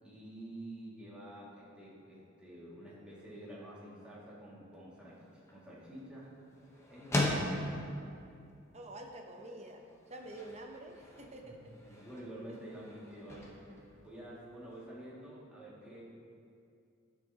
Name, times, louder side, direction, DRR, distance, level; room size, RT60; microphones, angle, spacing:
voice 1, 0.0-5.2 5.5-6.3 6.9-7.6 11.4-11.5 11.9-13.6 14.0-16.0, right 1 dB, 5° right, -8 dB, 2.1 m, -49 dB
sound 1, 5.1-14.8, left 1 dB, 15° left, 1.0 m, -40 dB
voice 2, 8.7-11.6 11.9-12.0 12.5-12.6, right 1 dB, 35° right, 2 dB, 0.8 m, -48 dB
12.5 x 6.7 x 2.9 m, 2.4 s
head